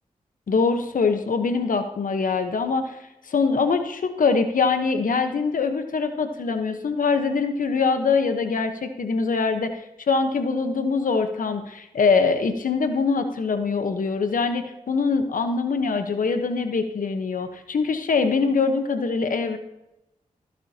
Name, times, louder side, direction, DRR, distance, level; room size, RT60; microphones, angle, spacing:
voice 1, 0.5-3.0 3.3-19.6, left 4 dB, 70° left, 7 dB, 1.1 m, -23 dB
15.0 x 11.5 x 2.9 m, 0.91 s
cardioid pair, 40°, 15 cm